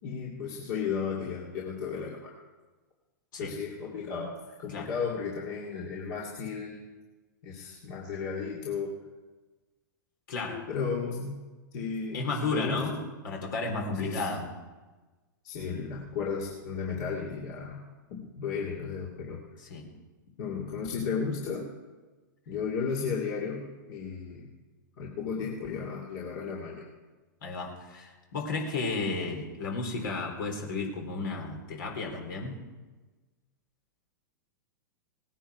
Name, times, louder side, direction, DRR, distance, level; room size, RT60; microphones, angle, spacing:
voice 1, 0.0-2.3 3.4-6.8 7.4-9.0 10.5-11.4 11.7-13.1 14.0-14.3 15.4-19.4 20.4-21.7 22.5-24.5 25.0-26.9, left 5 dB, 55° left, -3 dB, 2.5 m, -34 dB
voice 2, 10.3-10.6 12.1-13.0 13.2-14.4 19.7-19.8 27.4-32.6, left 3 dB, 70° left, 1 dB, 3.7 m, -33 dB
18.5 x 10.0 x 4.8 m, 1.2 s
hypercardioid pair, 115°, 11 cm